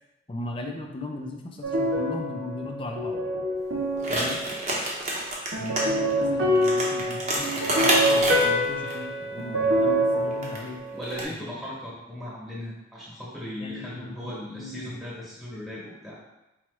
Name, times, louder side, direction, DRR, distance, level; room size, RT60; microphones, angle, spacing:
voice 1, 0.3-3.2 4.1-4.4 5.5-10.8 13.6-15.0, left 2 dB, 25° left, 2 dB, 0.4 m, -37 dB
sound 1, 1.6-4.7 5.5-11.2, equal, 65° right, 0.7 m, -26 dB
sound 2, 4.0-5.8 6.1-6.2 6.5-8.9 10.3-10.6 11.0-11.2, right 1 dB, 35° right, 0.8 m, -27 dB
voice 2, 10.9-16.2, left 1 dB, ahead, -7 dB, 1.3 m, -37 dB
4.6 x 3.0 x 3.1 m, 0.95 s
head